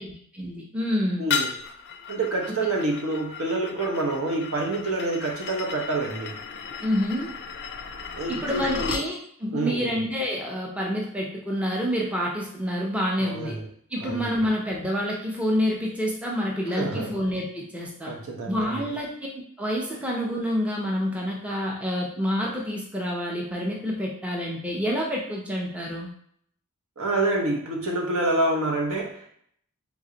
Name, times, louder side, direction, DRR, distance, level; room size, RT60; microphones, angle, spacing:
voice 1, 0.0-1.2 2.5-2.6 6.8-7.3 8.3-13.6 13.9-18.1 18.5-19.1 19.6-26.1, equal, 5° right, -3 dB, 0.6 m, -28 dB
voice 2, 1.2-1.6 2.1-6.4 8.2-9.0 9.5-10.0 13.2-13.7 14.0-14.3 16.7-17.2 18.0-18.8 27.0-29.3, right 2 dB, 65° right, 0 dB, 0.9 m, -27 dB
sound 1, 1.3-9.1, left 6 dB, 50° left, 0.4 m, -35 dB
3.6 x 3.1 x 3.8 m, 0.63 s
head